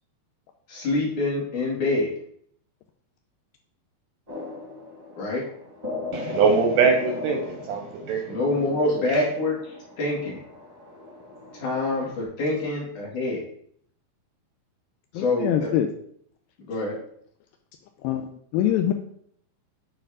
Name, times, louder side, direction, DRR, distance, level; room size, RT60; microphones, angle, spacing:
voice 1, 0.7-2.1 5.2-5.4 8.3-9.6 10.0-10.4 11.6-13.4 15.2-15.7 16.7-17.0, left 2 dB, 55° left, -4 dB, 3.6 m, -25 dB
sound 1, 4.3-12.2, left 3 dB, 25° right, 0.8 m, -37 dB
voice 2, 6.1-8.4 9.1-9.2, right 5 dB, 75° right, 3 dB, 1.9 m, -23 dB
voice 3, 15.1-15.9 18.0-18.9, left 11 dB, 80° left, 6 dB, 2.2 m, -24 dB
9.0 x 4.4 x 4.9 m, 0.64 s
omnidirectional pair, 4.5 m